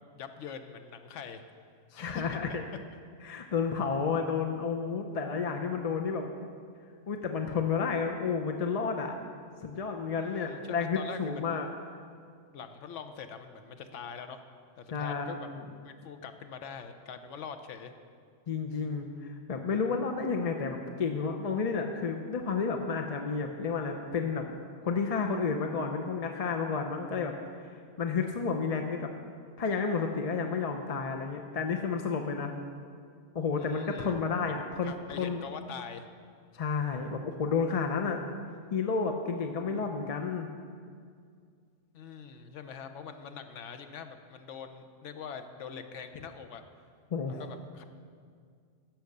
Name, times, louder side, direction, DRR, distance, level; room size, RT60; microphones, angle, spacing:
voice 1, 0.1-1.4 2.0-2.4 2.7-2.8 10.2-11.6 12.5-14.4 14.8-15.5 15.8-17.9 33.6-34.1 34.8-36.1 41.9-46.6 47.3-47.8, left 6 dB, 75° left, 8 dB, 1.0 m, -43 dB
voice 2, 1.9-2.6 3.2-6.3 7.1-9.1 9.6-11.7 14.9-15.4 18.5-24.5 24.8-29.1 29.6-32.5 33.3-35.4 36.5-38.2 38.7-40.5 47.1-47.4, left 5 dB, 45° left, 4 dB, 0.5 m, -31 dB
10.5 x 7.1 x 6.6 m, 2.1 s
omnidirectional pair, 1.3 m